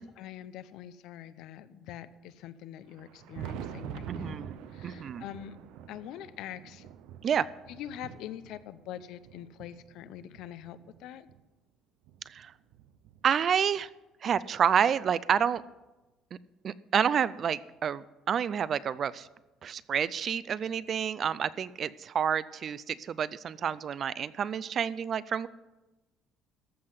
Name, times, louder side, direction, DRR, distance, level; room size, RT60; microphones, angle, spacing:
voice 1, 0.0-5.6 5.9-6.9 7.7-11.3, left 11 dB, 70° left, 14 dB, 0.6 m, -44 dB
Thunder, 2.8-11.4 12.0-13.8 14.9-15.0 15.6-15.7 17.5-17.6 19.0-19.1 20.7-20.8, right 9 dB, 85° right, 0.7 m, -46 dB
voice 2, 4.1-4.5 4.8-5.2 7.2-7.4 12.3-12.5 13.2-13.9 14.2-15.6 16.6-19.3 19.6-25.5, right 8 dB, 35° right, 18 dB, 0.3 m, -29 dB
14.5 x 5.7 x 7.8 m, 1.1 s
cardioid pair, 170°, 0 cm